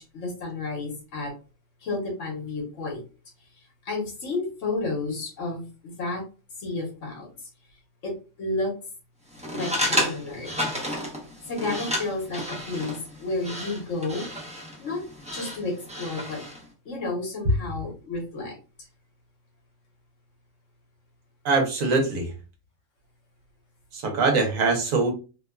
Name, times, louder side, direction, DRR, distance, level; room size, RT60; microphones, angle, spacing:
voice 1, 0.0-1.3 1.8-3.0 3.8-6.2 6.6-7.3 8.0-8.7 9.5-10.5 11.5-14.3 14.8-15.0 15.3-16.4 16.8-18.6, left 2 dB, 65° left, 1 dB, 1.2 m, -31 dB
sound 1, 9.3-16.6, equal, 10° right, 0.4 m, -32 dB
voice 2, 21.4-22.3 23.9-25.1, right 3 dB, 75° right, 3 dB, 1.2 m, -22 dB
2.8 x 2.2 x 2.2 m, 0.33 s
omnidirectional pair, 1.5 m